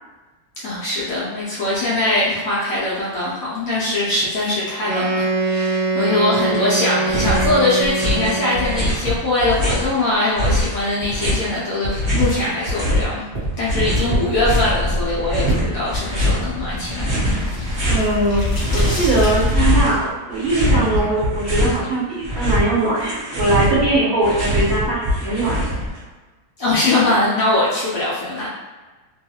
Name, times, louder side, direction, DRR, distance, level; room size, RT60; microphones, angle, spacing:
voice 1, 0.6-13.3 13.6-17.1 26.6-28.5, left 2 dB, 70° left, -7 dB, 0.8 m, -21 dB
Wind instrument woodwind instrument, 4.8-8.9, right 2 dB, 85° right, 0.7 m, -23 dB
sound 1, 7.0-7.6 7.8-9.9 10.3-13.0 13.3-14.8 15.2-16.4 16.9-18.1 18.5-20.0 20.3-21.8 22.1-26.0, equal, 20° right, 0.9 m, -22 dB
sound 2, 14.3-20.0, left 1 dB, 30° left, 0.4 m, -24 dB
voice 2, 17.9-25.7, right 2 dB, 35° right, -11 dB, 1.4 m, -21 dB
3.1 x 2.3 x 2.8 m, 1.2 s
omnidirectional pair, 2.2 m